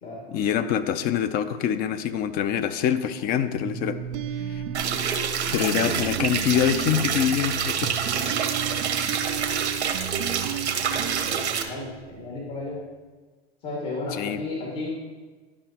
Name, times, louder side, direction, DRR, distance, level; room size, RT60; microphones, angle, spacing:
voice 1, 0.3-4.0 4.5-4.6 5.5-7.9 14.2-14.4, left 9 dB, 30° left, 12 dB, 0.4 m, -25 dB
sound 1, 3.6-12.4, right 10 dB, 40° right, 0.4 m, -34 dB
sound 2, 4.7-11.6, right 7 dB, 85° right, 0.9 m, -27 dB
voice 2, 10.4-12.8 13.6-14.9, left 2 dB, 55° left, -4 dB, 2.1 m, -34 dB
11.0 x 5.6 x 2.9 m, 1.4 s
hypercardioid pair, 105°, 33 cm